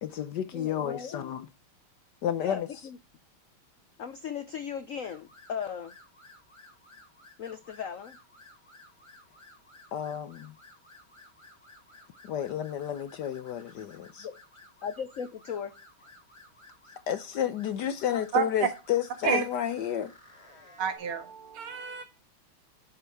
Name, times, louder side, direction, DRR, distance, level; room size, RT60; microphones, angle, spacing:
voice 1, 0.0-1.5 2.2-2.9 9.9-10.5 12.2-14.3 17.1-20.1, left 10 dB, 65° left, 1.1 m, -31 dB
voice 2, 0.5-1.3 2.4-3.0 4.0-5.9 7.4-8.2 14.2-14.4 14.8-15.7, left 7 dB, 85° left, 0.7 m, -37 dB
sound 1, 5.0-21.0, left 2 dB, 15° left, 3.2 m, -55 dB
voice 3, 18.3-18.7 19.2-19.5 20.8-22.0, right 7 dB, 75° right, 2.4 m, -29 dB
11.0 x 5.8 x 4.7 m
omnidirectional pair, 2.4 m